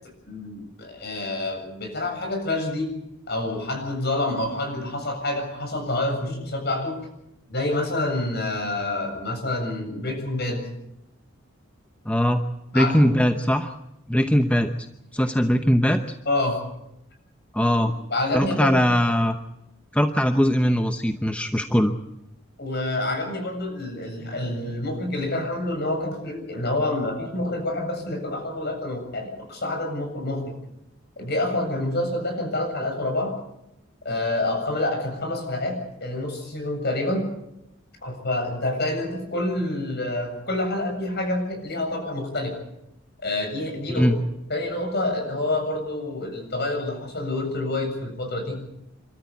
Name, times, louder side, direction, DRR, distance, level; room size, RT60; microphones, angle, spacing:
voice 1, 0.3-2.9 3.3-7.0 7.5-10.7 12.7-13.1 16.3-16.6 17.6-18.8 22.6-30.5 31.2-33.3 34.0-37.2 38.0-42.6 43.2-44.1 44.5-48.6, left 2 dB, 50° left, 4 dB, 7.5 m, -27 dB
voice 2, 12.1-12.4 12.7-13.7 14.1-14.7 15.1-16.0 17.5-17.9 18.3-19.4 19.9-21.9 44.0-44.2, equal, 5° left, 6 dB, 0.8 m, -20 dB
28.5 x 13.5 x 8.5 m, 0.85 s
head